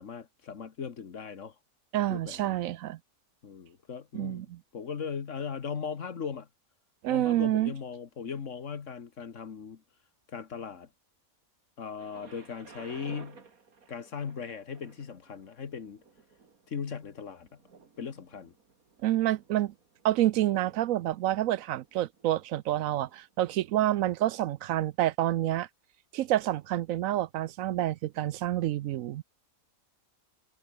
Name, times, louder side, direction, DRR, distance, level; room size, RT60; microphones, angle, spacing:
voice 1, 0.0-1.6 2.1-2.6 3.4-4.4 4.7-6.5 7.1-9.8 10.3-10.9 11.8-13.4 13.9-16.0 16.7-17.6 18.0-18.5, left 6 dB, 60° left, 1.7 m, -38 dB
voice 2, 1.9-3.0 4.1-4.6 7.0-7.7 19.0-19.7 20.0-25.7 26.1-29.2, right 13 dB, 75° right, 1.0 m, -28 dB
Thunder, 12.0-23.8 24.6-24.7, right 5 dB, 90° right, 2.7 m, -56 dB
omnidirectional pair, 1.5 m